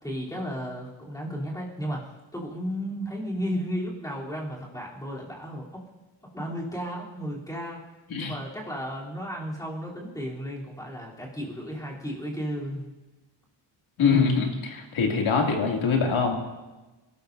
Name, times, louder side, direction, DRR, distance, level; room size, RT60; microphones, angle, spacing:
voice 1, 0.0-5.8 6.3-7.8 8.2-12.8, equal, 5° left, -5 dB, 3.4 m, -34 dB
voice 2, 14.0-16.3, left 5 dB, 75° left, 0 dB, 2.8 m, -23 dB
29.5 x 13.0 x 2.7 m, 1.2 s
wide cardioid pair, 160°, 48 cm